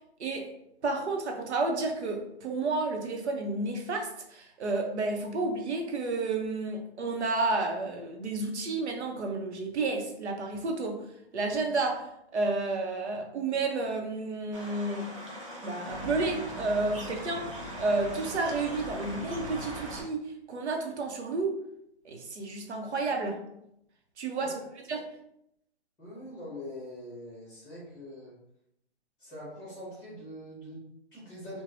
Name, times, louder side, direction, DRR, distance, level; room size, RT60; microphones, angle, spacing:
voice 1, 0.2-0.5 0.8-11.0 11.3-15.1 15.6-21.6 22.0-23.4 24.2-24.5 24.9-25.1, right 3 dB, 90° right, 3 dB, 0.7 m, -31 dB
sound 1, 14.5-20.0, equal, 30° right, 0.5 m, -40 dB
voice 2, 24.4-24.7 26.0-28.4 29.2-31.6, left 1 dB, 10° left, -8 dB, 1.1 m, -43 dB
3.2 x 2.2 x 2.5 m, 0.78 s
hypercardioid pair, 170°, 33 cm